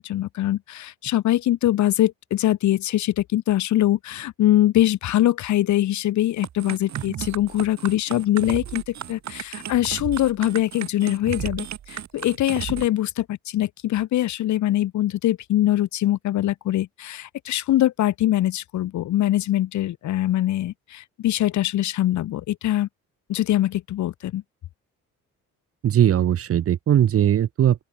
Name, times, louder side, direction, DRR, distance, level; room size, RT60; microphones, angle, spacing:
voice 1, 0.0-22.9 23.3-24.4, left 13 dB, 70° left, 1.1 m, -23 dB
sound 1, 6.4-12.9, right 10 dB, 65° right, 4.2 m, -34 dB
voice 2, 25.8-27.8, right 10 dB, 50° right, 0.8 m, -19 dB
open air
cardioid pair, 90°, 30 cm